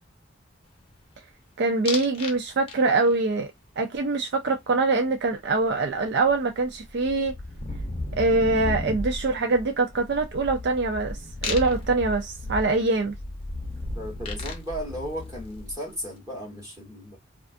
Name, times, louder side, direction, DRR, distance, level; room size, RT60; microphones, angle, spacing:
voice 1, 1.6-3.5 3.8-7.3 8.2-13.1, right 3 dB, 55° right, 0.4 m, -24 dB
sound 1, 1.9-2.4 2.7-3.2 5.6-5.7 5.9-16.0, left 2 dB, 30° left, 0.7 m, -34 dB
voice 2, 13.9-17.2, equal, 15° right, 1.0 m, -35 dB
2.5 x 2.3 x 2.4 m
head